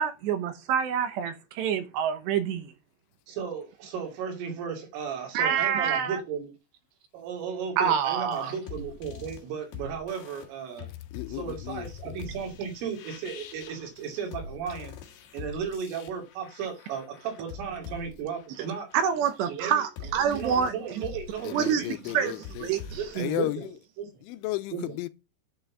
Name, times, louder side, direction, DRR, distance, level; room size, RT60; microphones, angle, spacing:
voice 1, 0.0-2.7 5.3-6.2 7.8-8.5 18.9-21.0 21.5-22.3 22.6-23.4, right 8 dB, 70° right, 3.0 m, -27 dB
voice 2, 3.3-6.6 7.1-10.9 11.3-15.0 15.3-18.9 19.5-19.8 20.3-22.3 23.0-23.5 24.0-24.1 24.7-24.8, right 7 dB, 90° right, 5.3 m, -35 dB
sound 1, 8.2-23.4, left 6 dB, 60° left, 3.0 m, -44 dB
voice 3, 11.1-12.2 21.4-22.7 23.1-23.7 24.2-25.1, left 15 dB, 85° left, 3.2 m, -34 dB
10.0 x 5.7 x 7.3 m
omnidirectional pair, 5.6 m